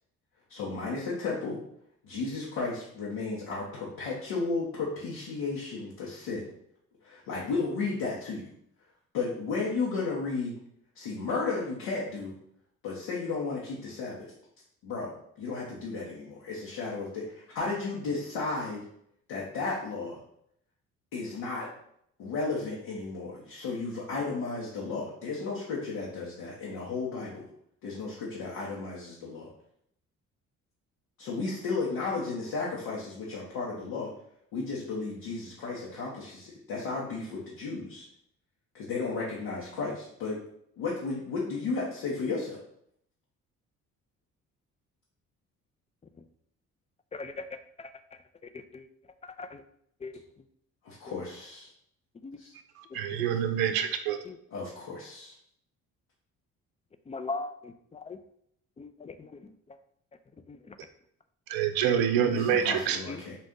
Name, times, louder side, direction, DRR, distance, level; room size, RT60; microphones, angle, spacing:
voice 1, 0.5-1.6 2.0-6.4 7.0-8.5 9.1-10.6 10.9-12.3 12.8-14.3 14.8-18.8 19.3-20.2 21.1-21.7 22.2-27.5 27.8-29.5 31.2-34.1 34.5-38.1 38.7-40.4 40.8-42.6 50.8-51.7 52.4-52.5 54.5-55.3 62.3-63.4, left 4 dB, 75° left, -5 dB, 1.0 m, -34 dB
voice 2, 47.1-48.9 49.2-49.6 50.0-50.4 51.1-51.2 52.1-52.4 52.9-53.3 54.2-54.4 57.1-58.2 58.8-59.8 60.3-60.8 63.1-63.2, left 3 dB, 20° left, 9 dB, 0.4 m, -41 dB
voice 3, 52.9-54.2 61.5-63.0, right 9 dB, 80° right, 7 dB, 0.6 m, -26 dB
4.2 x 2.5 x 3.6 m, 0.70 s
hypercardioid pair, 55°, 36 cm